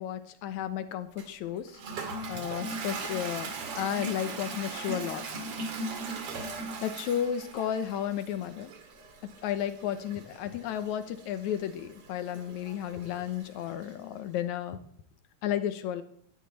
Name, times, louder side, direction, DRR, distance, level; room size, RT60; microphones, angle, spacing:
voice 1, 0.0-1.8 2.3-5.2 6.8-8.7 9.4-14.8 15.4-16.0, left 10 dB, 80° left, 11 dB, 2.2 m, -33 dB
Toilet flush, 1.2-14.0, right 3 dB, 55° right, 2.4 m, -39 dB
17.5 x 11.0 x 4.1 m, 0.66 s
omnidirectional pair, 3.3 m